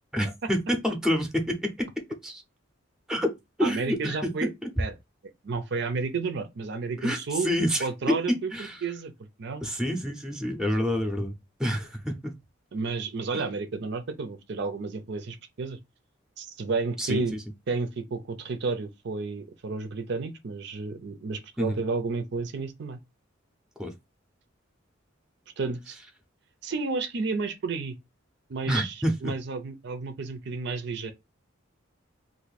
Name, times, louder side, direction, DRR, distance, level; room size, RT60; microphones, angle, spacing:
voice 1, 0.1-2.4 3.1-3.3 3.6-4.5 7.0-7.2 7.4-8.8 9.6-11.3 11.6-12.3 17.0-17.2 21.6-21.8 23.8-23.9 28.7-29.3, equal, 5° right, 0.6 m, -28 dB
voice 2, 3.6-4.5 4.8-5.0 5.4-7.5 7.8-8.5 8.8-9.7 12.7-15.8 16.4-17.4 17.7-23.0 25.6-26.0 26.6-28.0 28.5-31.1, right 4 dB, 60° right, 0.5 m, -31 dB
2.6 x 2.5 x 3.9 m
head